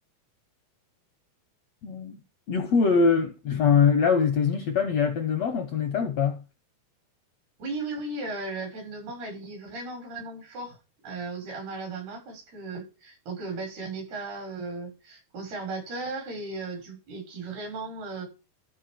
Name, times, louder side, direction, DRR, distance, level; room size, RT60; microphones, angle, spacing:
voice 1, 1.8-2.2 2.5-6.4, left 6 dB, 70° left, 1.6 m, -23 dB
voice 2, 7.6-10.8 11.0-18.3, right 3 dB, 80° right, 7.9 m, -36 dB
13.5 x 5.0 x 7.7 m
omnidirectional pair, 4.4 m